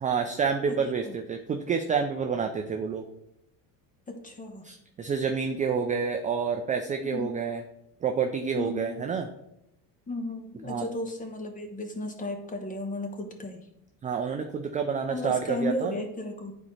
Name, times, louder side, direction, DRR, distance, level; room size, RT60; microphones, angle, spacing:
voice 1, 0.0-3.0 4.6-7.6 8.0-9.3 10.7-10.8 14.0-15.9, right 6 dB, 20° right, 4 dB, 0.3 m, -28 dB
voice 2, 4.1-4.7 7.0-7.3 8.5-9.0 10.1-13.7 15.1-16.5, left 1 dB, 20° left, 5 dB, 1.0 m, -34 dB
9.6 x 4.4 x 3.2 m, 0.80 s
cardioid pair, 120°, 42 cm